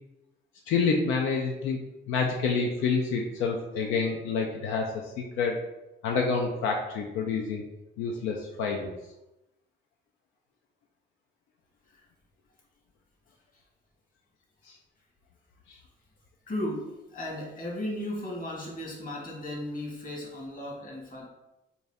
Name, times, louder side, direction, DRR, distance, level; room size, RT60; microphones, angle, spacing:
voice 1, 0.7-1.8 2.1-5.6 6.0-7.6 8.0-8.9, left 5 dB, 90° left, 1 dB, 0.5 m, -28 dB
voice 2, 16.5-21.3, left 1 dB, 45° left, -2 dB, 1.3 m, -35 dB
3.9 x 2.3 x 3.4 m, 0.94 s
cardioid pair, 90°, 20 cm